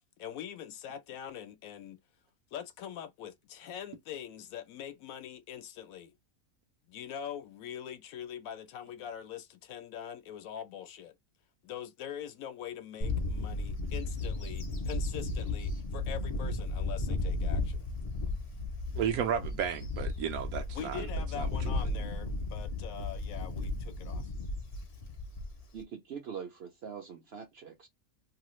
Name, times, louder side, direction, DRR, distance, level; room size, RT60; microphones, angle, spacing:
voice 1, 0.2-2.0 2.5-6.1 6.9-11.1 11.6-17.9 20.7-24.2, left 9 dB, 75° left, 1.0 m, -43 dB
Bird / Wind, 13.0-25.8, left 2 dB, 50° left, 0.4 m, -34 dB
voice 2, 19.0-21.0 21.3-21.9, right 8 dB, 80° right, 1.1 m, -33 dB
voice 3, 25.7-27.9, right 7 dB, 60° right, 0.7 m, -43 dB
2.9 x 2.3 x 3.0 m
omnidirectional pair, 1.6 m